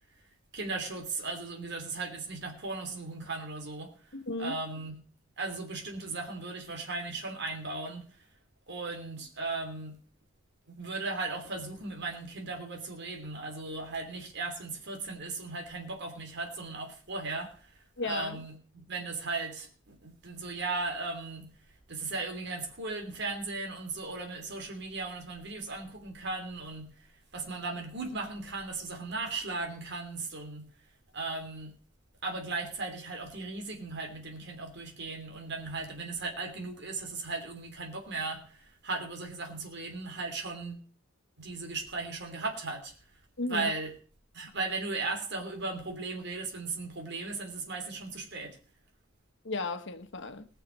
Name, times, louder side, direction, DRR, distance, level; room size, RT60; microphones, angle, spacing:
voice 1, 0.5-5.0 5.4-8.1 8.7-10.0 10.7-21.5 21.9-30.7 31.1-31.7 32.2-40.8 41.4-42.9 43.5-43.9 44.3-48.6, right 3 dB, 60° right, 3.1 m, -37 dB
voice 2, 4.1-4.6 18.0-18.4 43.4-43.7 49.4-50.5, left 3 dB, 65° left, 1.3 m, -34 dB
18.5 x 6.7 x 6.3 m
head